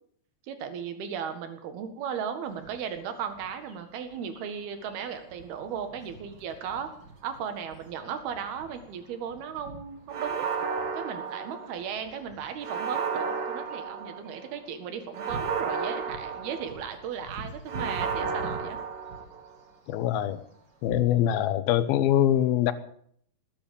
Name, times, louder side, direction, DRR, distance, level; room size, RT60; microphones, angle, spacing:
voice 1, 0.5-6.9 7.2-10.5 10.9-18.8, right 7 dB, 80° right, 8 dB, 3.7 m, -36 dB
sound 1, 2.4-21.0, right 2 dB, 30° right, 2.8 m, -48 dB
sound 2, 10.1-12.0 12.6-14.4 15.1-17.0 17.7-19.5, right 5 dB, 45° right, 2.2 m, -33 dB
voice 2, 19.9-20.4 20.8-22.7, left 11 dB, 80° left, 13 dB, 2.8 m, -23 dB
19.0 x 9.9 x 7.1 m, 0.64 s
omnidirectional pair, 4.4 m